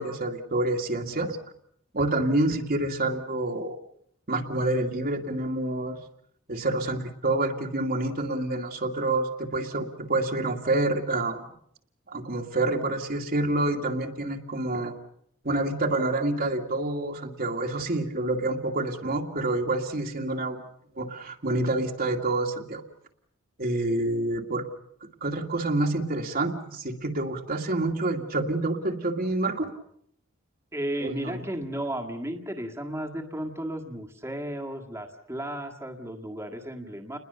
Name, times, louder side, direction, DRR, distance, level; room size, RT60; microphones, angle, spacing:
voice 1, 0.0-1.4 1.9-3.8 4.3-6.0 6.5-11.4 12.1-14.9 15.4-20.6 21.0-22.8 23.6-24.6 25.2-29.7 31.0-31.4, right 2 dB, 50° right, 3 dB, 2.1 m, -27 dB
voice 2, 30.7-37.2, right 1 dB, 15° right, 3 dB, 1.8 m, -34 dB
29.0 x 21.0 x 6.8 m, 0.68 s
head